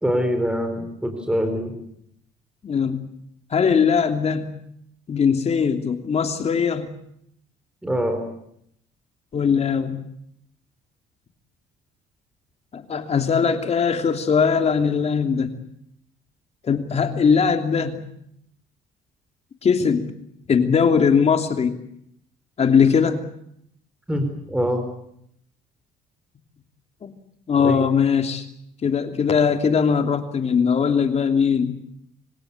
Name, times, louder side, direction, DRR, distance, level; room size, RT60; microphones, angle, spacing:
voice 1, 0.0-1.7 7.8-8.2 24.1-24.8 27.6-27.8, equal, 5° right, 6 dB, 4.3 m, -24 dB
voice 2, 2.6-3.0 3.5-4.6 5.1-7.0 9.3-10.0 12.7-15.5 16.6-18.1 19.6-20.1 20.5-21.8 22.6-23.3 27.0-27.1 27.5-28.5 28.8-31.8, left 6 dB, 40° left, 7 dB, 3.0 m, -20 dB
26.0 x 17.0 x 9.8 m, 0.72 s
cardioid pair, 110°, 17 cm